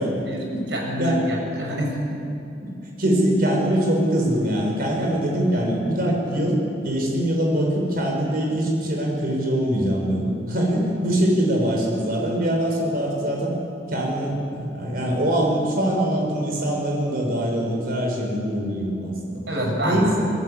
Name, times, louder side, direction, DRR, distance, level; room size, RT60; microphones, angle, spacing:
voice 1, 0.0-0.6 1.0-1.2 2.6-2.7 3.0-6.6 6.8-13.5 13.9-19.4 19.8-20.3, right 1 dB, 55° right, 0 dB, 6.1 m, -23 dB
voice 2, 0.7-2.2 19.5-20.1, equal, 70° right, 0 dB, 6.7 m, -26 dB
26.5 x 18.5 x 8.3 m, 2.7 s
head